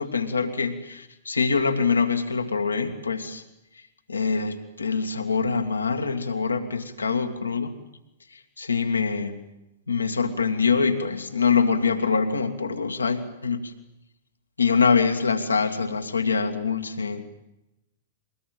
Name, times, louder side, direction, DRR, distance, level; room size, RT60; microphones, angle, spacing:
voice 1, 0.0-3.4 4.1-7.7 8.3-9.5 9.9-13.7 14.6-17.3, left 5 dB, 85° left, 6 dB, 2.1 m, -24 dB
22.5 x 19.5 x 9.2 m, 0.88 s
figure-of-eight pair, 105°, 0 cm